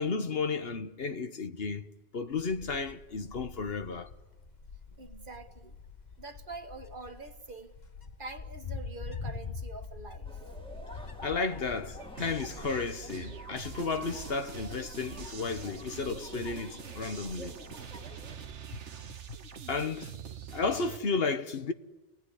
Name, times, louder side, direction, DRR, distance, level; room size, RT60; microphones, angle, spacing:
voice 1, 0.0-1.9 2.1-4.1 11.2-17.6 18.7-18.8 19.7-20.1 20.5-21.7, left 4 dB, 60° left, 1.3 m, -33 dB
Wind, 2.3-18.6, left 4 dB, 40° left, 1.4 m, -46 dB
voice 2, 5.0-5.8 6.2-7.8 8.2-10.4 15.5-15.7, right 3 dB, 50° right, 1.6 m, -45 dB
sound 1, 10.2-18.4, equal, 5° left, 2.3 m, -49 dB
sound 2, 12.2-21.0, right 8 dB, 85° right, 1.4 m, -44 dB
29.0 x 19.5 x 9.9 m
omnidirectional pair, 1.2 m